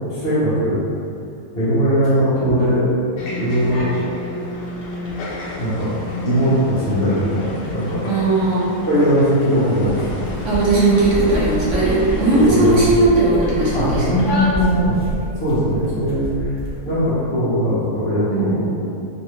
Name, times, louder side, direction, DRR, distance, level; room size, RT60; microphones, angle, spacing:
voice 1, 0.1-0.8 1.5-2.9 3.3-3.9 5.6-8.0 8.8-10.3 12.3-12.7 13.7-15.0 15.2-16.3 16.8-18.8, equal, 50° left, -11 dB, 1.0 m, -19 dB
sound 1, 3.2-12.7, left 4 dB, 75° left, 0.9 m, -32 dB
sound 2, 3.6-4.1 4.4-15.1, left 2 dB, 25° left, 0.6 m, -34 dB
voice 2, 8.1-8.8 10.4-14.1 18.3-18.7, right 2 dB, 65° right, -7 dB, 1.0 m, -17 dB
sound 3, 9.6-16.8, equal, 20° right, 0.3 m, -29 dB
3.2 x 2.6 x 3.1 m, 2.6 s
omnidirectional pair, 1.5 m